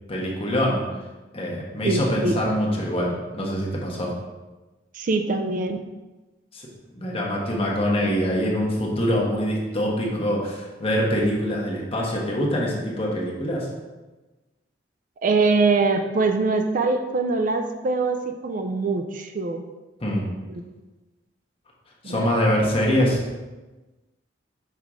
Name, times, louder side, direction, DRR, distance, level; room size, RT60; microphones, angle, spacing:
voice 1, 0.1-0.8 1.3-4.1 6.5-6.7 6.9-13.7 20.0-20.3 22.0-23.2, equal, 30° left, -3 dB, 1.2 m, -24 dB
voice 2, 1.8-2.4 4.9-5.8 15.2-19.6 20.4-20.6 22.0-22.3, right 3 dB, 45° right, 7 dB, 0.4 m, -23 dB
5.6 x 4.7 x 3.6 m, 1.2 s
head